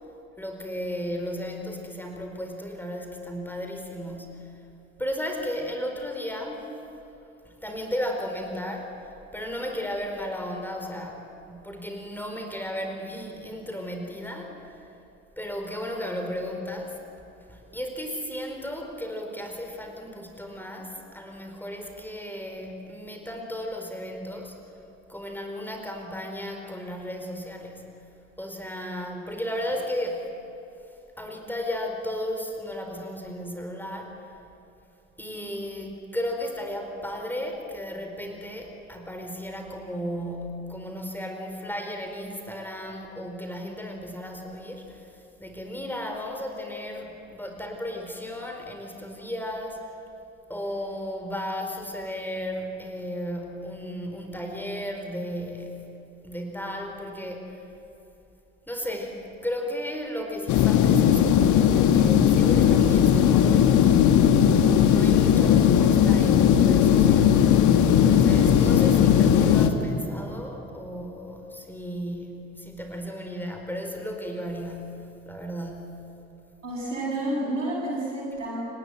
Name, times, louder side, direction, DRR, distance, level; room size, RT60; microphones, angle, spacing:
voice 1, 0.4-4.6 5.0-6.7 7.4-14.9 15.4-17.0 17.5-24.6 25.1-28.0 28.4-30.3 30.8-34.2 35.2-50.0 50.5-55.9 56.2-57.6 58.7-67.6 68.0-76.0, equal, 5° left, 3 dB, 4.4 m, -34 dB
sound 1, 60.5-69.7, left 9 dB, 50° left, 1.8 m, -18 dB
voice 2, 76.6-78.6, right 1 dB, 85° right, -5 dB, 7.8 m, -30 dB
29.5 x 19.5 x 7.9 m, 2.9 s
figure-of-eight pair, 50°, 37 cm